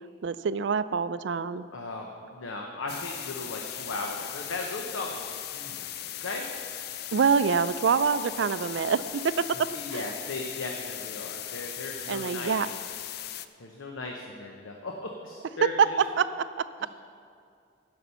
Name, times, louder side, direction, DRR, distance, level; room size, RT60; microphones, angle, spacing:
voice 1, 0.2-1.7 7.1-10.1 12.1-12.7 15.8-15.9 16.2-16.9, right 6 dB, 65° right, 14 dB, 0.3 m, -26 dB
voice 2, 1.7-5.9 6.2-6.4 9.7-12.6 13.6-16.0 16.8-16.9, left 2 dB, 90° left, 1 dB, 0.9 m, -37 dB
sound 1, 2.9-13.5, left 11 dB, 50° left, 0.4 m, -38 dB
11.0 x 6.1 x 6.8 m, 2.3 s
head